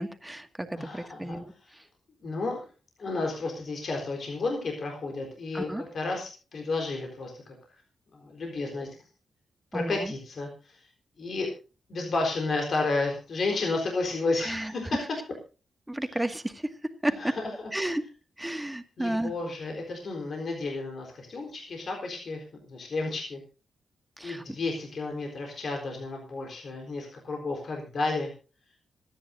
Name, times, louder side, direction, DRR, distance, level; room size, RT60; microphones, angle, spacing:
voice 1, 0.0-1.9 5.5-5.8 9.7-10.1 14.4-14.9 15.9-17.4 17.7-18.0 18.4-19.3 24.2-24.4, right 1 dB, 10° right, 7 dB, 2.1 m, -32 dB
voice 2, 0.8-1.4 2.2-2.7 3.0-7.5 8.1-8.9 9.7-10.8 11.2-11.5 11.9-14.9 17.2-17.5 19.0-23.4 24.2-28.3, left 3 dB, 60° left, 1 dB, 4.1 m, -32 dB
26.0 x 10.0 x 2.7 m, 0.34 s
cardioid pair, 70°, 0 cm